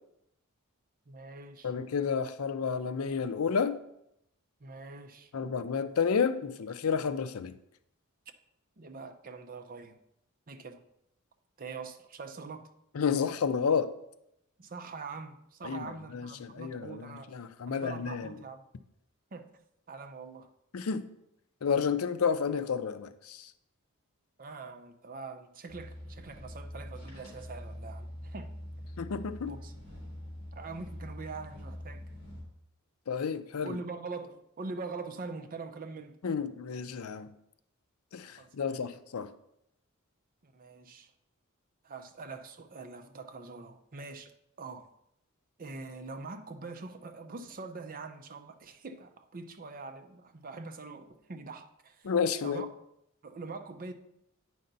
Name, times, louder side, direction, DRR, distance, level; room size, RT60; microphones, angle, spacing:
voice 1, 1.1-1.7 4.6-5.3 8.8-10.0 10.5-10.9 11.6-12.7 14.6-17.3 17.7-18.6 19.3-19.5 19.9-20.5 24.4-28.5 29.5-29.7 30.5-32.0 33.6-36.2 38.4-38.9 40.4-41.1 41.8-44.3 44.6-44.9 45.6-52.1 52.4-52.7 53.2-53.9, right 4 dB, 40° right, 7 dB, 0.6 m, -43 dB
voice 2, 1.6-3.8 5.3-7.5 12.9-13.9 15.6-18.3 20.7-21.1 21.6-23.5 29.0-29.5 33.1-33.8 36.2-37.3 38.1-39.3 52.0-52.6, left 6 dB, 75° left, 12 dB, 0.5 m, -31 dB
sound 1, 25.7-32.4, equal, 40° left, 3.3 m, -44 dB
9.4 x 5.4 x 4.0 m, 0.80 s
head